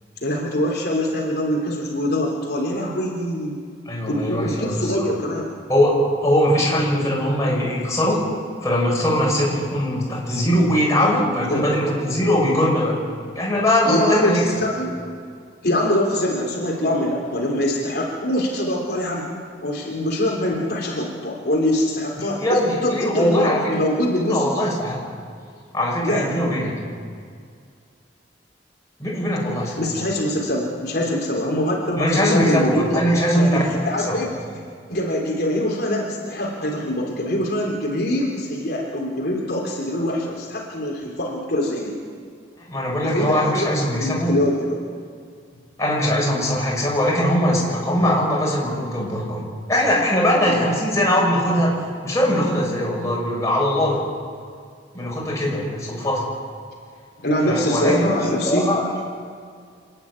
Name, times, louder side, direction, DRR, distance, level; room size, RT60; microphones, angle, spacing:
voice 1, 0.2-3.6 4.1-5.5 11.4-11.6 13.8-14.4 14.8-15.0 15.6-19.3 19.6-24.4 26.0-26.4 29.8-34.3 34.9-42.0 43.0-44.8 50.5-50.7 57.2-58.7, left 1 dB, 60° left, -3 dB, 3.7 m, -24 dB
voice 2, 3.8-5.1 5.7-5.9 6.2-8.2 8.6-12.9 13.3-14.5 22.4-23.6 24.3-25.0 25.7-26.7 29.0-29.9 32.0-33.6 34.1-34.2 42.6-44.3 45.8-49.4 49.7-51.7 52.0-54.0 54.9-56.2 57.4-58.2 58.4-58.9, equal, 20° left, -4 dB, 6.8 m, -21 dB
27.5 x 11.0 x 9.8 m, 2.2 s
head